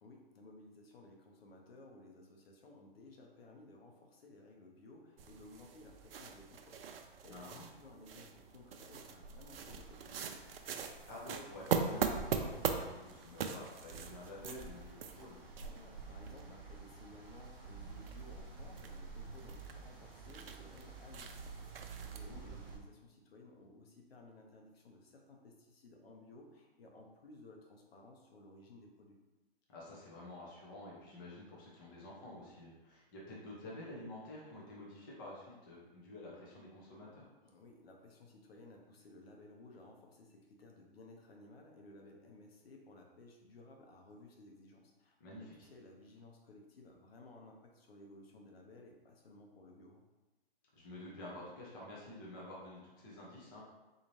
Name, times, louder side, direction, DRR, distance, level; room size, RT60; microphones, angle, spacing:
voice 1, 0.0-10.4 15.6-29.2 37.4-50.0, left 2 dB, 75° left, 1 dB, 0.9 m, -57 dB
sound 1, 5.2-22.8, right 6 dB, 70° right, 0.5 m, -42 dB
voice 2, 7.3-7.6 11.0-15.4 22.3-22.5 29.7-37.3 45.2-45.7 50.7-53.6, left 1 dB, 20° left, -5 dB, 0.6 m, -50 dB
sound 2, 9.4-22.8, right 2 dB, 15° right, 1.3 m, -56 dB
4.0 x 2.7 x 3.1 m, 1.1 s
hypercardioid pair, 160°, 30 cm